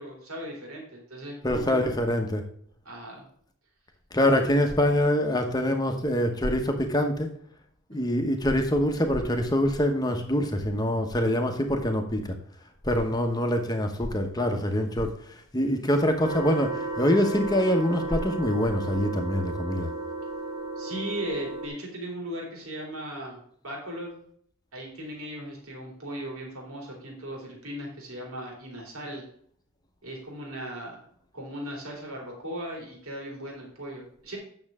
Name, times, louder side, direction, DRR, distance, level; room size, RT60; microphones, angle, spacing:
voice 1, 0.0-1.9 2.8-3.3 7.9-8.1 13.0-13.1 20.8-23.4 23.6-24.2 24.7-29.2 30.0-31.1 31.3-34.4, equal, 70° right, -1 dB, 3.0 m, -37 dB
voice 2, 1.4-2.4 4.1-7.3 7.9-12.3 12.8-19.9, left 1 dB, 15° left, 5 dB, 1.0 m, -25 dB
sound 1, 16.2-21.7, right 2 dB, 25° right, 1.4 m, -34 dB
8.8 x 6.6 x 3.6 m, 0.63 s
head